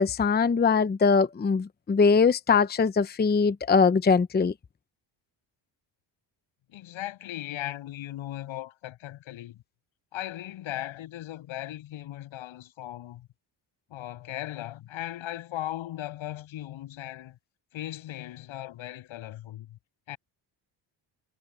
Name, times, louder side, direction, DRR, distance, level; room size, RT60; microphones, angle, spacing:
voice 1, 0.0-4.5, left 5 dB, 20° left, 0.8 m, -22 dB
voice 2, 6.7-9.6 10.1-13.3 13.9-17.4 17.7-19.8 20.1-20.2, left 14 dB, 80° left, 7.6 m, -38 dB
cardioid pair, 100°, 47 cm